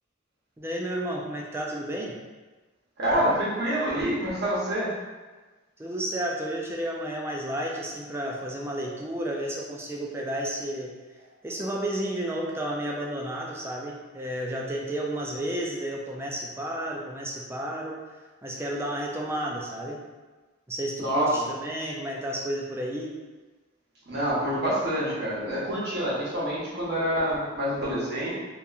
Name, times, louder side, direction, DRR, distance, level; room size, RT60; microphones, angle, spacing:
voice 1, 0.6-2.2 5.8-10.9 11.4-18.0 18.4-20.0 20.7-23.1, right 1 dB, 10° right, -2 dB, 0.3 m, -32 dB
voice 2, 3.0-4.9 21.0-21.4 24.1-28.3, equal, 60° right, -7 dB, 0.9 m, -27 dB
2.8 x 2.3 x 2.4 m, 1.3 s
head